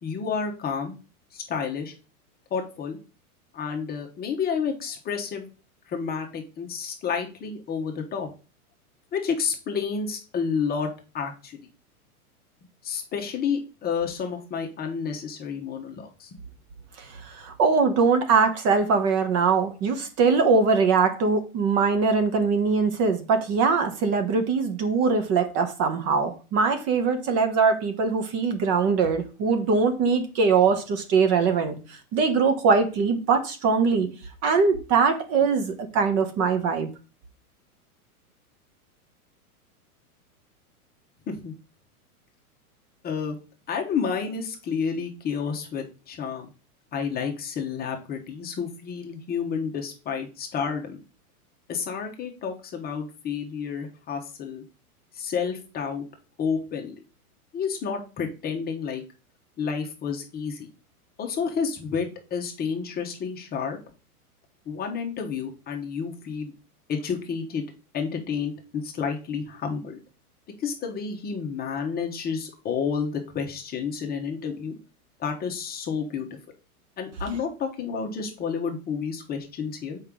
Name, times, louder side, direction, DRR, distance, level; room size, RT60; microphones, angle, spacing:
voice 1, 0.0-0.9 1.3-1.9 2.5-3.0 3.5-5.5 5.9-8.3 9.1-11.6 12.8-16.4 41.3-41.5 43.0-43.4 43.7-46.5 46.9-51.0 51.7-54.6 55.1-56.0 56.4-56.9 57.5-59.0 59.6-60.7 61.2-63.8 64.7-66.5 66.9-67.6 67.9-70.0 70.6-74.8 75.2-76.4 77.0-80.0, left 6 dB, 20° left, 2 dB, 1.1 m, -30 dB
voice 2, 17.2-31.7 32.1-34.1 34.4-36.9, right 5 dB, 35° right, 7 dB, 1.1 m, -22 dB
6.7 x 4.8 x 3.7 m, 0.34 s
hypercardioid pair, 125°, 45 cm